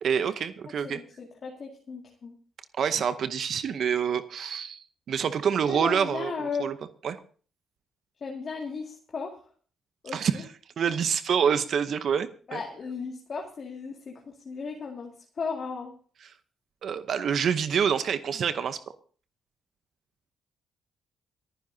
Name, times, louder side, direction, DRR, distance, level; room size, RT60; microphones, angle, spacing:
voice 1, 0.0-1.0 2.8-6.7 7.0-7.2 10.1-10.4 10.8-12.6 16.8-18.8, right 7 dB, 60° right, 11 dB, 0.8 m, -27 dB
voice 2, 0.8-2.3 5.7-6.7 8.2-9.3 10.0-10.4 12.5-15.1 15.4-15.9, left 5 dB, 45° left, 0 dB, 2.2 m, -35 dB
29.0 x 10.0 x 2.7 m, 0.42 s
cardioid pair, 90°, 0 cm